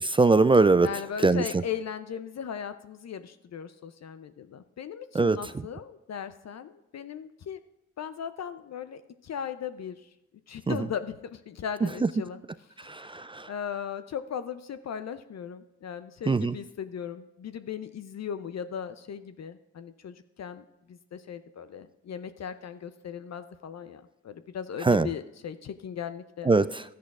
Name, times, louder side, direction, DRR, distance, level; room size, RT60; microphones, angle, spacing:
voice 1, 0.0-0.9 1.2-1.4 5.1-5.4 10.7-10.8 12.8-13.5 16.3-16.5 24.8-25.1 26.5-26.8, right 3 dB, 15° right, 15 dB, 0.3 m, -21 dB
voice 2, 0.8-7.6 8.0-10.1 10.5-12.4 12.8-26.5, left 8 dB, 55° left, 11 dB, 0.6 m, -38 dB
13.0 x 10.0 x 2.4 m, 0.89 s
supercardioid pair, 40°, 32 cm